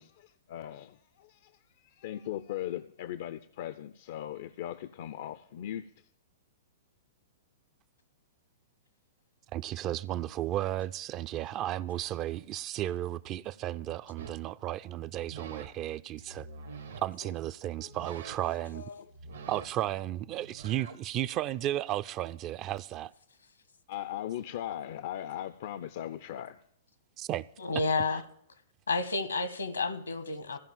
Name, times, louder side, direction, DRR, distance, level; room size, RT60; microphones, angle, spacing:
voice 1, 0.0-1.5 1.8-5.9 17.8-17.9 18.6-19.0 23.9-26.6, left 11 dB, 55° left, 0.4 m, -39 dB
voice 2, 9.5-16.5 17.0-18.8 19.5-23.1 27.2-27.4 28.1-28.2, right 13 dB, 35° right, 0.4 m, -34 dB
sound 1, 14.2-14.5 15.1-15.7 16.1-17.0 17.8-18.6 19.0-21.0, right 5 dB, 75° right, 1.4 m, -47 dB
voice 3, 27.6-28.2 28.9-30.6, left 3 dB, 85° left, 1.3 m, -30 dB
15.0 x 5.4 x 8.8 m
figure-of-eight pair, 110°, 0 cm